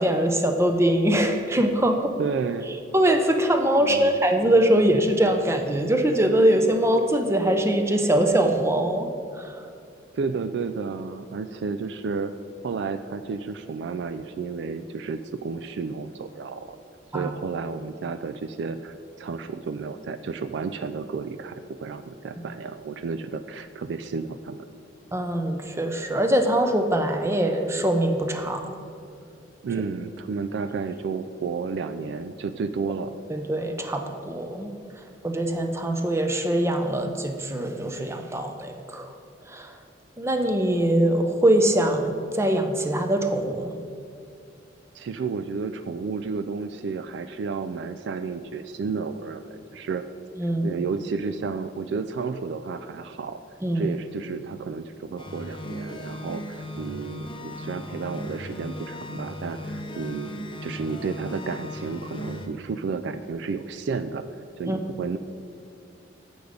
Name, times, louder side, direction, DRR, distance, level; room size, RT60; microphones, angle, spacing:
voice 1, 0.0-2.1 2.9-9.7 17.1-17.3 25.1-28.7 33.3-34.7 35.2-39.1 39.4-39.7 40.2-43.7 50.4-50.8 53.6-53.9 64.7-64.8, right 1 dB, 15° right, 5 dB, 0.6 m, -23 dB
voice 2, 2.2-2.7 3.8-4.2 10.1-12.3 12.6-16.8 17.1-24.6 29.6-33.1 44.9-50.0 50.6-53.4 53.7-65.2, right 5 dB, 65° right, 10 dB, 0.3 m, -32 dB
sound 1, 55.2-62.5, left 1 dB, 25° left, 0.6 m, -37 dB
8.0 x 6.8 x 5.1 m, 2.6 s
head